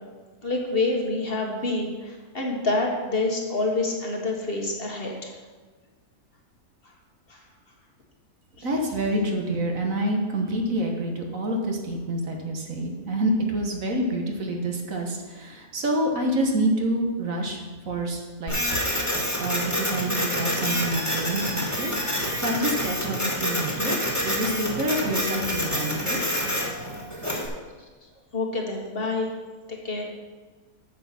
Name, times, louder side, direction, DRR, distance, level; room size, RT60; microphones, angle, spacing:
voice 1, 0.4-5.3 7.3-7.4 8.6-8.7 28.3-29.3 29.8-30.1, left 2 dB, 40° left, 0 dB, 1.5 m, -27 dB
voice 2, 8.6-17.6 17.9-18.6 19.4-21.9 22.4-26.2, right 1 dB, 65° right, 2 dB, 1.8 m, -27 dB
Printer, 18.5-27.5, equal, 10° left, 1.9 m, -27 dB
8.4 x 7.4 x 5.9 m, 1.4 s
omnidirectional pair, 1.5 m